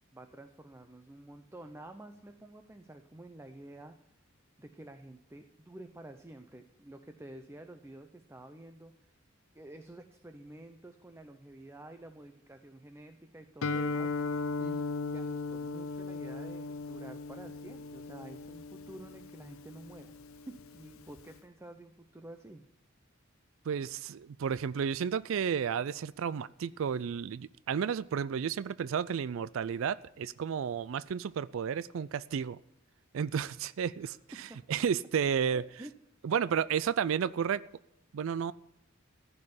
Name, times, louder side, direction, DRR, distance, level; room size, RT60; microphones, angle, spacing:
voice 1, 0.1-3.9 4.6-8.9 9.5-20.2 20.5-22.6 34.0-34.1 35.5-35.9, right 1 dB, 15° right, 7 dB, 0.7 m, -50 dB
Guitar, 13.6-21.4, left 3 dB, 90° left, 0.6 m, -37 dB
voice 2, 23.7-32.6 33.1-35.6 36.2-37.6 38.1-38.5, right 7 dB, 70° right, 17 dB, 0.4 m, -32 dB
15.0 x 5.5 x 9.6 m, 0.85 s
head